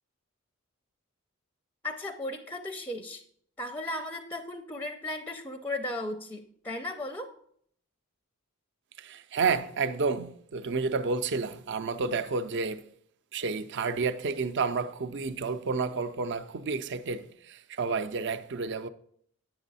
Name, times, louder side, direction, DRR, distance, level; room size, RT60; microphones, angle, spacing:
voice 1, 1.8-3.2 3.6-7.3, left 1 dB, 10° left, 0.5 m, -36 dB
voice 2, 9.0-12.8 13.3-18.9, right 4 dB, 55° right, 0.5 m, -30 dB
8.8 x 7.0 x 4.1 m
head